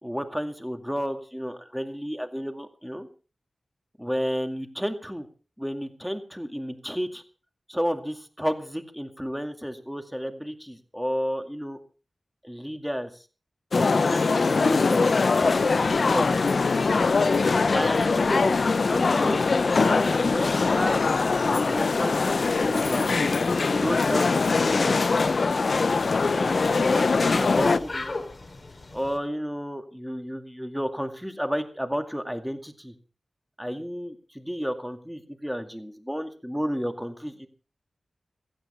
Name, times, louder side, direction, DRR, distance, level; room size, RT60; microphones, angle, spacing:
voice 1, 0.0-3.1 4.0-5.3 5.6-7.2 7.7-11.8 12.4-13.2 13.7-15.0 15.4-16.5 17.7-18.6 18.9-21.0 21.5-23.1 23.7-25.1 26.3-28.2 28.9-32.9 33.6-37.5, equal, ahead, 6 dB, 2.2 m, -32 dB
sound 1, 13.7-27.8, left 4 dB, 65° left, 0.7 m, -22 dB
sound 2, 15.5-29.2, left 2 dB, 45° left, 2.7 m, -42 dB
16.5 x 15.5 x 4.5 m, 0.37 s
wide cardioid pair, 95°, 0 cm